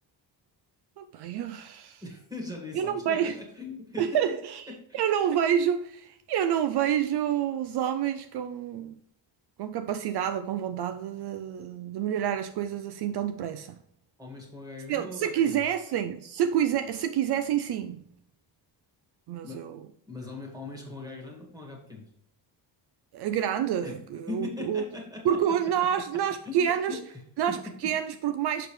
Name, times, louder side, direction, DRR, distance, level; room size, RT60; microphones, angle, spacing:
voice 1, 1.0-2.0 2.7-3.4 4.0-4.6 4.9-9.0 9.6-13.8 14.9-18.1 19.3-19.8 23.1-24.8 25.2-27.0 27.4-28.7, right 9 dB, 65° right, 0.5 m, -28 dB
voice 2, 2.0-4.1 4.7-5.0 14.2-15.6 19.4-19.7 20.1-22.1 23.8-24.0 24.3-25.5 26.4-27.2, left 3 dB, 10° right, 1.9 m, -40 dB
6.6 x 6.5 x 3.1 m
cardioid pair, 160°, 43 cm